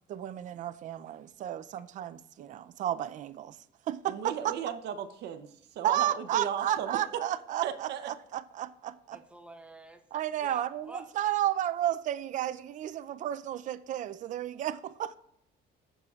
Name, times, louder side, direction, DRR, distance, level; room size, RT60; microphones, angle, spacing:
voice 1, 0.1-3.6 3.9-4.5 5.8-9.2 10.1-15.2, right 12 dB, 45° right, 0.4 m, -32 dB
voice 2, 4.1-7.2 7.6-8.1, right 9 dB, 75° right, 0.7 m, -36 dB
voice 3, 9.1-10.0 10.4-11.1, right 2 dB, 5° right, 0.8 m, -47 dB
14.5 x 6.7 x 2.4 m
cardioid pair, 140°, 18 cm